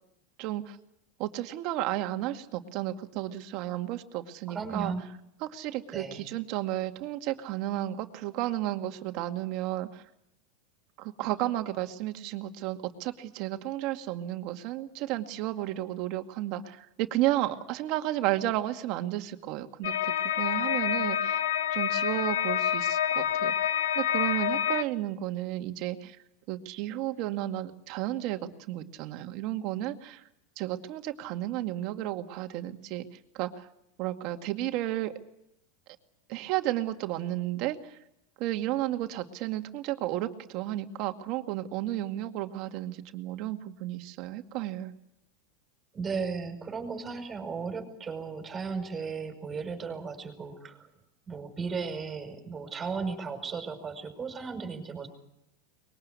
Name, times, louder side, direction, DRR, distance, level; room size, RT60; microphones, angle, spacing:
voice 1, 0.4-0.8 1.2-4.9 5.4-10.0 11.0-23.5 24.0-26.2 26.5-30.2 30.6-33.1 33.3-33.7 34.0-35.1 36.3-38.0 38.4-44.9, right 14 dB, 55° right, 6 dB, 2.1 m, -33 dB
voice 2, 4.5-5.1 5.9-6.3 45.9-50.9 51.3-55.1, right 5 dB, 20° right, 6 dB, 5.5 m, -35 dB
sound 1, 19.8-24.8, left 10 dB, 90° left, 1.0 m, -28 dB
23.5 x 21.5 x 8.4 m, 0.80 s
supercardioid pair, 125°, 0 cm